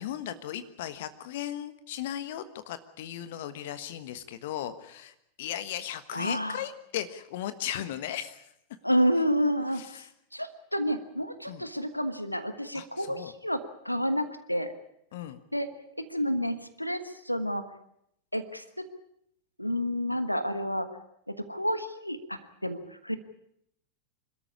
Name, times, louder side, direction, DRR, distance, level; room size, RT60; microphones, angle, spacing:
voice 1, 0.0-8.5 9.7-10.1 11.5-11.7 12.7-13.3 15.1-15.4, left 11 dB, 55° left, 12 dB, 1.3 m, -37 dB
voice 2, 6.1-6.6 8.8-10.0 10.3-14.7 15.5-15.7 16.1-17.6 18.3-18.8 19.6-20.9 21.3-23.2, equal, 90° left, 11 dB, 1.4 m, -30 dB
26.0 x 13.0 x 9.8 m, 0.77 s
figure-of-eight pair, 90°, 0 cm